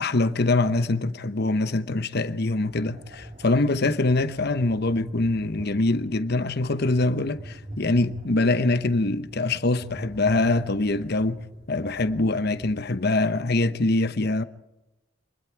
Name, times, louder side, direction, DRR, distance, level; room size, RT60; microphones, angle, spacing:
voice 1, 0.0-11.4 11.7-14.4, left 2 dB, 50° left, 1.0 m, -24 dB
sound 1, 2.7-12.7, equal, 40° right, 3.6 m, -42 dB
27.0 x 21.0 x 4.7 m
head